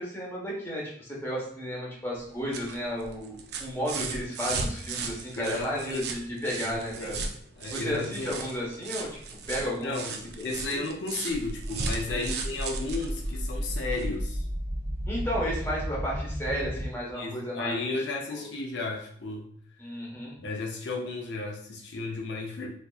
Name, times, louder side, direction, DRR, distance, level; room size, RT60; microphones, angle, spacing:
voice 1, 0.0-7.2 7.7-9.2 9.5-10.1 10.7-10.8 12.1-12.4 15.1-17.7 18.3-18.5 19.8-20.3, equal, 15° left, -4 dB, 1.1 m, -33 dB
sound 1, 2.1-14.2 15.5-15.6, right 4 dB, 65° right, 0.5 m, -37 dB
voice 2, 5.4-6.1 6.7-7.2 7.6-8.4 9.8-14.5 17.1-19.5 20.4-22.7, left 3 dB, 75° left, 0 dB, 0.6 m, -34 dB
sound 2, 11.3-16.9, equal, 40° right, 0.9 m, -33 dB
4.3 x 2.7 x 2.3 m, 0.62 s
head